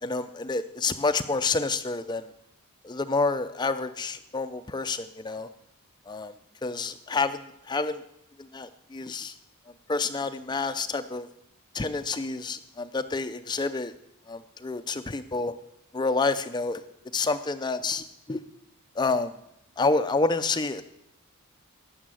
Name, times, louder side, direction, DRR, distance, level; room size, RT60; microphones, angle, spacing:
voice 1, 0.0-2.3 2.8-5.5 6.1-6.3 6.6-8.0 8.4-9.3 9.9-11.3 11.7-13.9 14.3-15.5 15.9-16.8 17.1-18.4 19.0-19.3 19.8-20.8, left 3 dB, 20° left, 9 dB, 0.4 m, -28 dB
14.5 x 10.5 x 7.6 m, 0.80 s
head